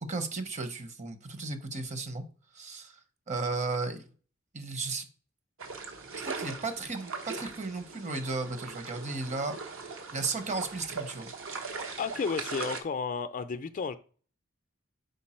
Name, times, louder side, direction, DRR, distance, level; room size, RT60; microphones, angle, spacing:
voice 1, 0.1-2.2 2.5-3.0 3.3-4.1 4.5-5.1 6.2-9.6 10.1-11.3, right 3 dB, 35° right, 0.8 m, -34 dB
sound 1, 5.6-12.8, right 4 dB, 75° right, 1.0 m, -40 dB
voice 2, 12.0-14.0, left 5 dB, 40° left, 0.4 m, -32 dB
5.2 x 4.5 x 4.3 m
head